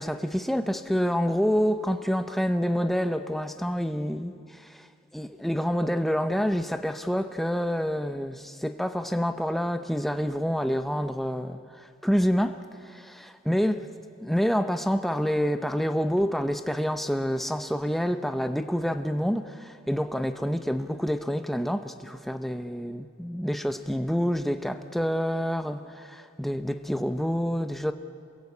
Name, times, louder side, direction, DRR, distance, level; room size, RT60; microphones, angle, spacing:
voice 1, 0.0-4.9 5.1-13.9 14.2-27.9, equal, ahead, 0.7 m, -27 dB
27.5 x 21.5 x 8.4 m
head